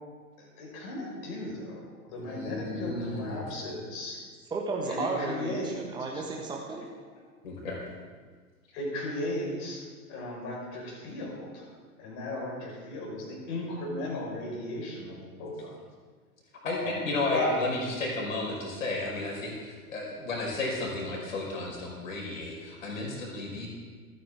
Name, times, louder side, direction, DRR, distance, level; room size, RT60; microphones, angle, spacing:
voice 1, 0.4-1.8 2.0-4.2 4.9-5.8 6.1-6.2 8.7-9.8 10.1-11.7 12.0-15.7 16.8-17.0 17.3-17.5, left 2 dB, 35° left, -2 dB, 5.4 m, -36 dB
voice 2, 2.2-3.4 7.4-7.8 16.6-23.7, left 2 dB, 60° left, -2 dB, 5.2 m, -33 dB
voice 3, 4.5-6.9, right 3 dB, 10° right, -1 dB, 1.6 m, -33 dB
28.5 x 9.7 x 3.7 m, 1.5 s
figure-of-eight pair, 100°, 44 cm